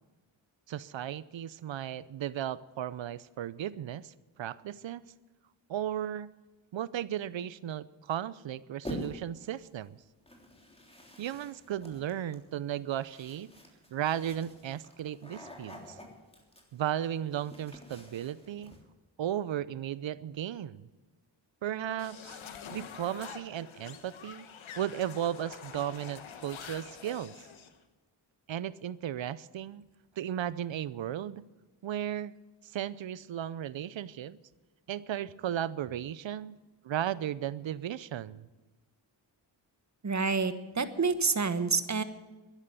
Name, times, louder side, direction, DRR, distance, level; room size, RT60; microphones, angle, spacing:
voice 1, 0.7-5.0 5.7-6.3 6.7-10.0 11.2-13.5 13.9-16.0 16.7-18.7 19.2-20.9 21.6-22.4 22.7-24.5 24.8-27.3 28.5-29.8 30.2-31.4 31.8-32.3 32.6-34.4 34.9-36.6 36.8-38.5, right 11 dB, 75° right, 19 dB, 0.7 m, -35 dB
sound 1, 8.8-9.4 10.3-18.8, left 1 dB, 10° left, 3.4 m, -47 dB
sound 2, 22.0-27.7, left 7 dB, 85° left, 1.4 m, -46 dB
voice 2, 40.0-42.0, right 4 dB, 35° right, 11 dB, 1.3 m, -28 dB
12.5 x 11.0 x 9.3 m, 1.2 s
cardioid pair, 60°, 46 cm